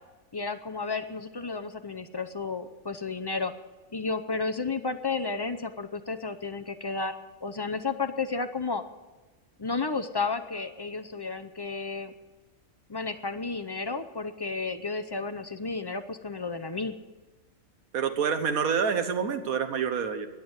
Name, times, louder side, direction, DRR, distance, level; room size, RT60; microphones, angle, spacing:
voice 1, 0.3-3.5 3.9-8.8 9.6-12.1 12.9-16.9, left 4 dB, 40° left, 8 dB, 0.3 m, -32 dB
voice 2, 17.9-20.3, right 6 dB, 80° right, 8 dB, 1.6 m, -27 dB
21.0 x 7.3 x 8.0 m, 1.3 s
omnidirectional pair, 1.5 m